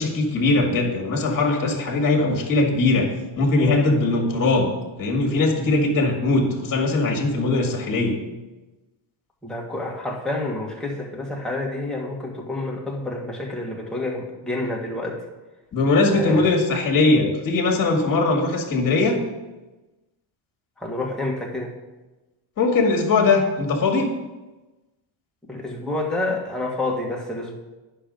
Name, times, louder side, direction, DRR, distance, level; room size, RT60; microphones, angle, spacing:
voice 1, 0.0-3.1 3.4-4.7 5.0-8.2 15.7-19.2 22.6-24.1, left 3 dB, 40° left, 2 dB, 1.9 m, -20 dB
voice 2, 9.4-15.2 16.1-16.5 20.8-21.7 25.5-27.5, left 2 dB, ahead, -3 dB, 1.6 m, -28 dB
10.0 x 6.0 x 5.2 m, 1.1 s
cardioid pair, 130°, 50 cm